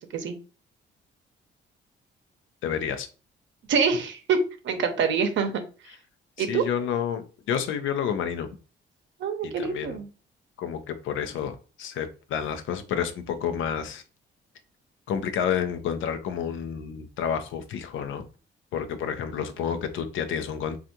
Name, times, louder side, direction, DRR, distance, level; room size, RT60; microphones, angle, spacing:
voice 1, 2.6-3.1 6.4-8.5 9.4-10.0 10.6-14.0 15.1-18.3 18.7-20.8, left 8 dB, 80° left, 0.6 m, -30 dB
voice 2, 3.7-4.4 4.6-5.5 6.4-6.6 9.2-10.1, right 6 dB, 70° right, 0.7 m, -25 dB
3.4 x 2.4 x 2.7 m
cardioid pair, 90°, 20 cm